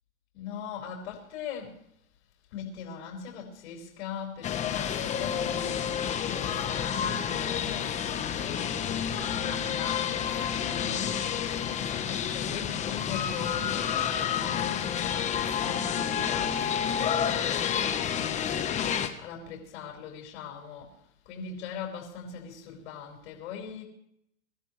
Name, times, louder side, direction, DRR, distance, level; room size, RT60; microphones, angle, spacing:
voice 1, 0.3-1.8 2.5-5.8 6.3-9.0 9.4-11.0 11.7-14.5 15.5-18.5 19.2-20.9 21.3-23.8, left 6 dB, 60° left, -1 dB, 5.5 m, -40 dB
sound 1, 4.4-19.1, left 8 dB, 15° left, 1.2 m, -29 dB
26.5 x 13.5 x 3.3 m, 0.75 s
hypercardioid pair, 150°, 41 cm